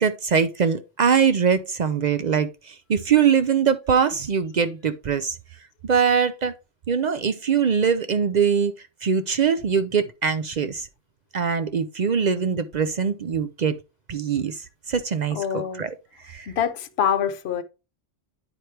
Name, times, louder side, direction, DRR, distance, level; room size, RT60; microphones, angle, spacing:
voice 1, 0.0-5.4 5.8-6.5 6.9-8.7 9.0-10.9 11.3-13.8 14.1-15.9 16.2-16.5, right 6 dB, 55° right, 0.5 m, -22 dB
voice 2, 15.3-15.8 16.5-17.6, left 8 dB, 60° left, 1.0 m, -25 dB
9.8 x 4.5 x 3.2 m
omnidirectional pair, 1.3 m